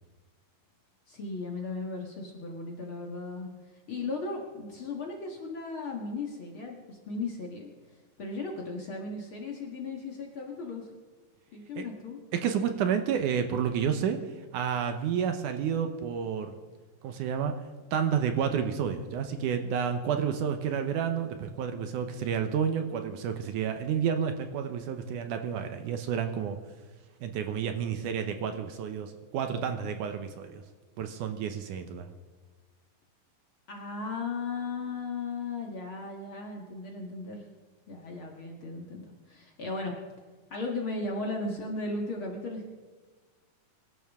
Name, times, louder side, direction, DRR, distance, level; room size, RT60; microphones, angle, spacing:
voice 1, 1.1-3.5 3.9-7.7 8.2-10.9 11.5-12.2 33.7-37.5 37.9-39.0 39.3-39.9 40.5-42.7, left 3 dB, 45° left, 0 dB, 1.9 m, -36 dB
voice 2, 12.3-14.2 14.5-16.5 17.0-17.5 17.9-26.6 27.2-30.6 31.0-32.1, right 7 dB, 70° right, 7 dB, 2.1 m, -30 dB
23.5 x 12.5 x 3.6 m, 1.4 s
omnidirectional pair, 4.1 m